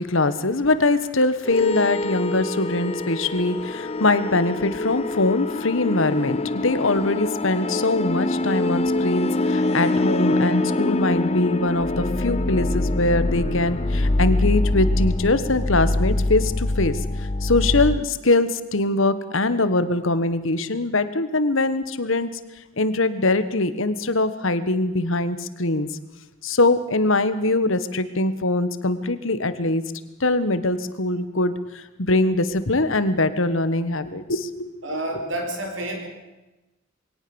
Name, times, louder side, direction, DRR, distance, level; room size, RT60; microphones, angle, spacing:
voice 1, 0.0-22.4 22.8-25.9 26.4-29.8 30.2-34.7, left 2 dB, 75° left, 13 dB, 1.4 m, -22 dB
sound 1, 1.5-18.0, left 2 dB, 30° left, 0.6 m, -24 dB
voice 2, 34.8-36.1, right 1 dB, 65° right, 4 dB, 4.9 m, -29 dB
22.5 x 18.0 x 7.1 m, 1.0 s
head